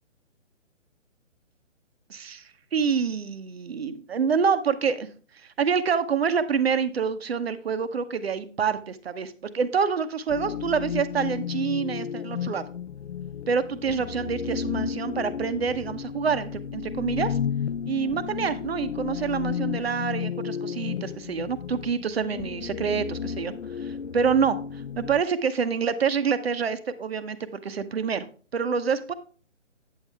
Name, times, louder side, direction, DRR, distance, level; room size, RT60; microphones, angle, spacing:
voice 1, 2.1-2.4 2.7-5.1 5.6-12.6 13.5-17.4 17.9-23.5 23.8-24.6 25.0-28.3 28.5-29.1, right 6 dB, 50° right, 12 dB, 0.8 m, -27 dB
sound 1, 10.3-25.2, left 8 dB, 65° left, 0.5 m, -33 dB
8.8 x 7.4 x 3.3 m, 0.40 s
figure-of-eight pair, 145°, 38 cm